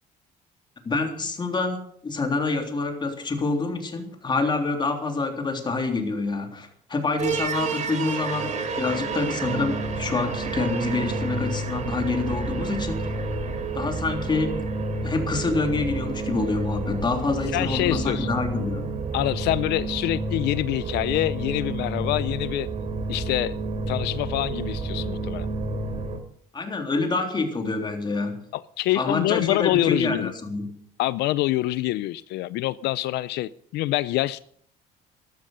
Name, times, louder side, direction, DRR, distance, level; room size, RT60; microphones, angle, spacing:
voice 1, 0.9-1.8 2.0-8.5 8.8-13.1 13.7-14.6 15.0-18.8 26.5-28.4 29.0-30.7, left 3 dB, 25° left, 4 dB, 3.4 m, -27 dB
sound 1, 7.2-26.2, right 3 dB, 45° right, 3.1 m, -29 dB
voice 2, 17.5-18.3 19.1-22.7 23.1-23.6 23.9-25.5 28.5-30.3 31.0-34.4, left 16 dB, 80° left, 16 dB, 0.5 m, -26 dB
13.0 x 13.0 x 6.6 m, 0.64 s
cardioid pair, 110°, 17 cm